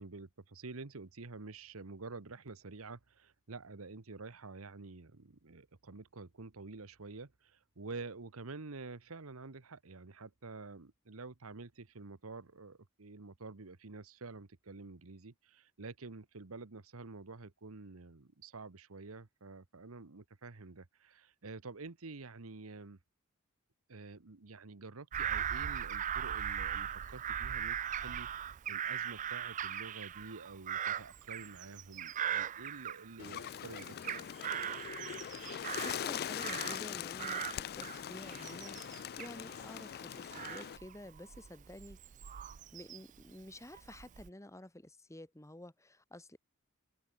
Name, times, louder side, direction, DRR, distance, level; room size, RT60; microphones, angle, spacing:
voice 1, 0.0-23.0 23.9-34.3, right 3 dB, 80° right, 1.2 m, -49 dB
Bird vocalization bird call bird song / Crow, 25.1-33.4 33.8-36.9 37.2-43.2 43.7-44.3, right 9 dB, 35° right, 0.3 m, -39 dB
Bird, 33.2-40.8, left 10 dB, 45° left, 0.3 m, -42 dB
voice 2, 35.8-38.8 39.2-42.0 42.7-46.4, left 1 dB, 15° left, 1.8 m, -50 dB
open air
head